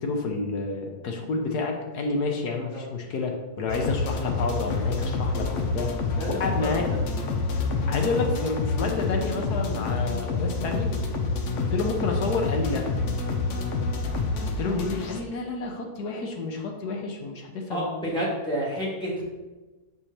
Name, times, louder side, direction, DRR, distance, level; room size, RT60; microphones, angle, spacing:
voice 1, 0.0-5.9 6.3-7.0 7.9-10.9 11.6-12.8 14.4-17.9, left 3 dB, 90° left, 2 dB, 1.5 m, -29 dB
sound 1, 3.7-15.2, left 3 dB, 60° left, 0.9 m, -28 dB
voice 2, 6.2-7.0 17.7-19.2, equal, 5° left, -6 dB, 1.8 m, -30 dB
7.2 x 6.5 x 2.9 m, 1.2 s
omnidirectional pair, 1.6 m